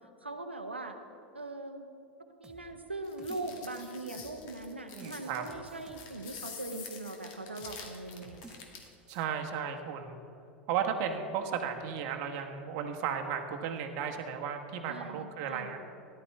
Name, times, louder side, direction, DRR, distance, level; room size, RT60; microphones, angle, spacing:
voice 1, 0.2-1.0 1.3-1.9 2.4-8.4 14.9-15.8, right 2 dB, 90° right, 6 dB, 0.8 m, -41 dB
sound 1, 2.4-4.6 5.0-7.2 7.6-7.8 8.2-9.3, right 2 dB, 10° right, 1.5 m, -54 dB
sound 2, 3.0-8.9, left 6 dB, 55° left, 2.0 m, -47 dB
voice 2, 4.9-5.4 9.1-10.2 10.7-15.8, right 7 dB, 50° right, 4 dB, 1.3 m, -34 dB
18.0 x 11.5 x 3.5 m, 2.6 s
figure-of-eight pair, 80°, 6 cm